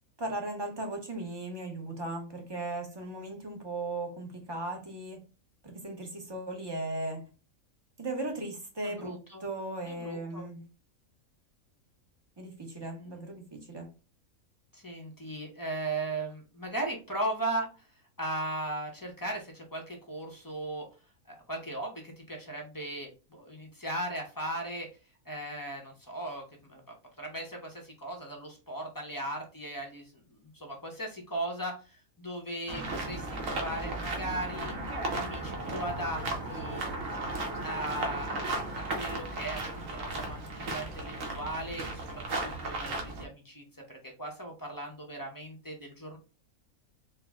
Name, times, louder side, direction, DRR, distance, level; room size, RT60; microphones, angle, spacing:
voice 1, 0.2-5.2 5.6-7.3 8.0-10.6 12.4-13.9, right 2 dB, 25° right, 0.6 m, -37 dB
voice 2, 8.8-9.4 9.9-10.4 13.0-13.2 14.7-17.7 18.2-20.9 21.3-24.9 25.2-26.8 27.2-34.8 35.1-36.8 37.6-46.2, right 1 dB, 20° left, 0.5 m, -37 dB
sound 1, 32.7-43.3, right 2 dB, 70° right, 1.2 m, -35 dB
4.4 x 2.0 x 3.5 m
omnidirectional pair, 1.5 m